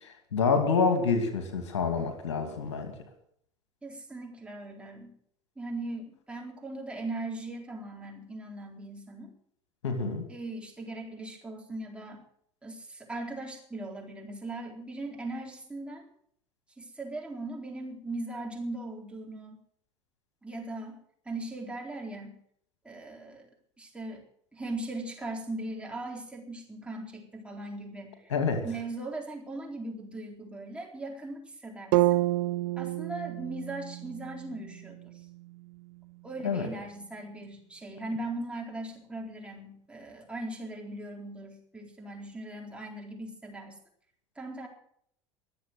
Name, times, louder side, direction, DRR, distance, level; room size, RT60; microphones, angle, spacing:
voice 1, 0.0-2.9 9.8-10.2 28.3-28.7 36.4-36.7, left 5 dB, 70° left, 6 dB, 2.4 m, -27 dB
voice 2, 3.8-5.1 5.6-9.3 10.3-12.2 12.6-16.1 16.8-19.6 20.4-22.4 22.8-23.5 23.8-24.2 24.5-28.3 28.6-32.0 32.8-35.2 36.2-43.8 44.4-44.7, right 2 dB, 5° right, 0 dB, 4.1 m, -39 dB
sound 1, 31.9-36.0, right 17 dB, 50° right, 0.6 m, -30 dB
23.0 x 7.7 x 6.4 m, 0.66 s
figure-of-eight pair, 75°, 15 cm